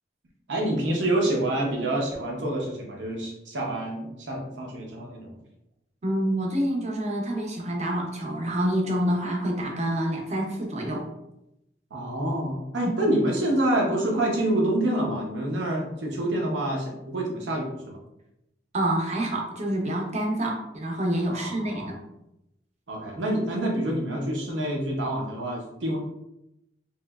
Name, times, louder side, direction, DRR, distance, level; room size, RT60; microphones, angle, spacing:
voice 1, 0.5-5.3 11.9-18.0 21.3-21.9 22.9-26.0, right 1 dB, 85° right, 0 dB, 0.8 m, -27 dB
voice 2, 6.0-11.1 18.7-22.0, right 1 dB, 40° right, 0 dB, 0.6 m, -27 dB
3.0 x 2.7 x 2.3 m, 0.87 s
head